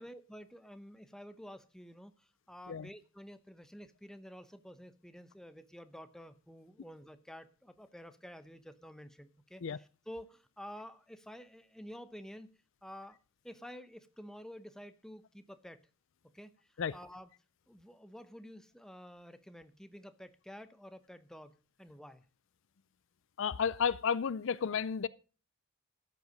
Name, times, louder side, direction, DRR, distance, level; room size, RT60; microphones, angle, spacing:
voice 1, 0.0-12.5 12.8-13.2 13.4-15.8 16.3-17.3 17.7-22.2, equal, 5° left, 0.8 m, -50 dB
voice 2, 23.4-25.1, left 6 dB, 65° left, 0.5 m, -32 dB
13.0 x 8.2 x 5.2 m
head